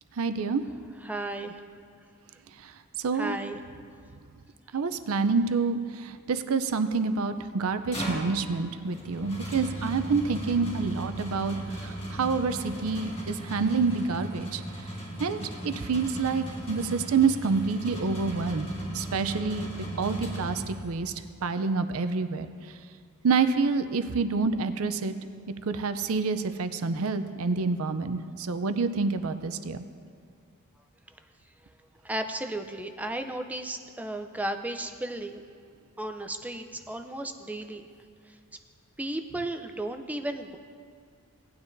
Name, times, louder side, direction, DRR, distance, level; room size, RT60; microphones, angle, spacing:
voice 1, 0.2-0.6 3.0-3.4 4.7-11.6 11.8-14.6 15.2-18.7 18.9-21.1 21.4-22.5 23.2-25.1 25.7-29.8, right 4 dB, 75° right, 10 dB, 0.5 m, -27 dB
voice 2, 1.0-1.5 3.1-3.6 32.0-35.4 36.0-37.8 39.0-40.6, right 1 dB, 5° right, 6 dB, 0.4 m, -34 dB
sound 1, 7.7-21.1, right 1 dB, 25° left, 1.9 m, -37 dB
17.5 x 9.5 x 2.6 m, 2.2 s
head